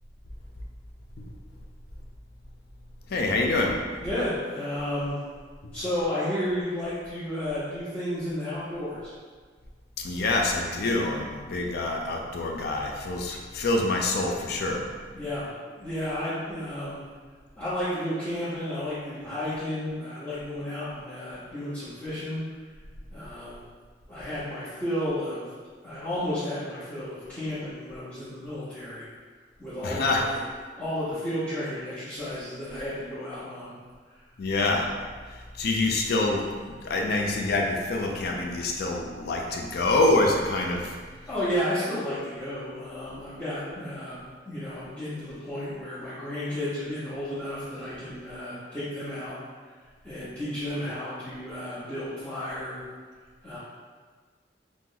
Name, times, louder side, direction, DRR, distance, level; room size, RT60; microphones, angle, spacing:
voice 1, 3.1-3.7 5.6-5.7 10.0-14.8 29.8-30.2 34.4-34.9 35.6-40.9, left 2 dB, 65° left, 1 dB, 0.4 m, -26 dB
voice 2, 4.0-5.2 5.7-9.1 15.1-17.0 17.6-22.4 23.1-23.6 24.1-25.5 25.8-29.1 29.6-30.4 30.8-33.7 41.3-44.2 44.5-49.4 50.0-52.8 53.4-53.6, left 1 dB, 10° left, -14 dB, 0.7 m, -32 dB
2.9 x 2.0 x 3.6 m, 1.5 s
head